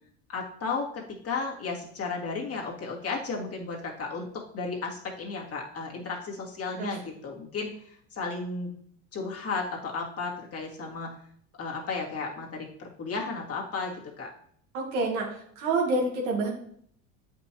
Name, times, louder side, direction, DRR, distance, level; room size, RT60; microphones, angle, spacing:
voice 1, 0.3-8.8 9.1-11.1 11.6-14.3, left 4 dB, 40° left, -2 dB, 2.2 m, -34 dB
voice 2, 14.7-15.3 15.6-16.5, right 2 dB, 85° right, 0 dB, 2.1 m, -27 dB
7.9 x 5.5 x 3.0 m, 0.63 s
supercardioid pair, 95°, 38 cm